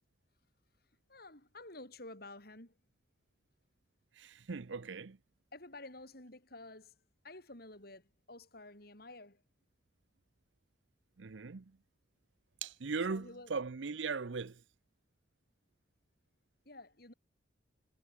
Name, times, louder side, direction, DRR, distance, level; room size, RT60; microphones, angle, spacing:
voice 1, 1.1-2.7 5.5-6.9 7.2-9.4 13.1-13.5 16.7-17.1, left 2 dB, 55° left, 7.4 m, -51 dB
voice 2, 4.2-5.2 11.2-11.6 12.6-14.6, right 4 dB, 85° right, 0.7 m, -39 dB
head